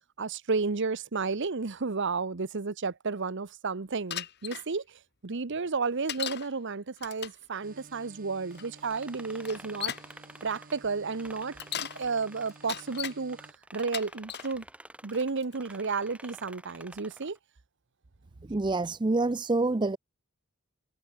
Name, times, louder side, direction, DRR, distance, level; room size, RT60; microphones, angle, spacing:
voice 1, 0.2-9.9 10.4-11.6 11.9-13.4 13.7-14.6 15.0-17.4, right 4 dB, 60° right, 0.9 m, -32 dB
Bicycle, 4.1-4.7 6.1-6.5 7.0-7.4 8.5-8.6 9.4-10.1 11.4-12.0 12.5-13.2 13.8-14.5 15.1-15.5, left 10 dB, 50° left, 1.9 m, -37 dB
sound 1, 7.6-13.5, right 3 dB, 40° right, 2.0 m, -54 dB
sound 2, 8.5-13.0 13.3-17.4, right 1 dB, 5° right, 3.6 m, -49 dB
voice 2, 18.5-20.0, right 2 dB, 20° right, 0.5 m, -27 dB
head